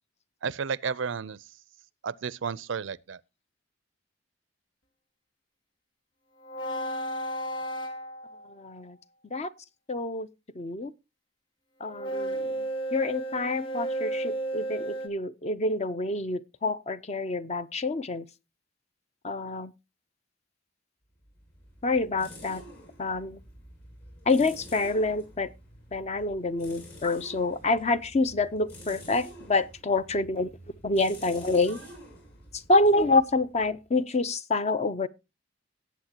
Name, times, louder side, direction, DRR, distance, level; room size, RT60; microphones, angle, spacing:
voice 1, 0.4-1.4 2.0-3.2, right 6 dB, 70° right, 0.5 m, -32 dB
sound 1, 6.4-8.6 11.9-15.1, right 1 dB, 85° left, 1.8 m, -33 dB
voice 2, 8.6-9.0 9.3-9.5 9.9-10.3 10.6-10.9 11.8-12.5 12.9-18.2 19.2-19.7 21.8-22.6 23.0-23.4 24.3-25.5 25.9-30.5 30.8-31.8 32.7-35.1, left 2 dB, 35° left, 0.6 m, -27 dB
sound 2, 21.2-33.9, equal, 55° left, 7.6 m, -49 dB
18.0 x 8.1 x 2.8 m
head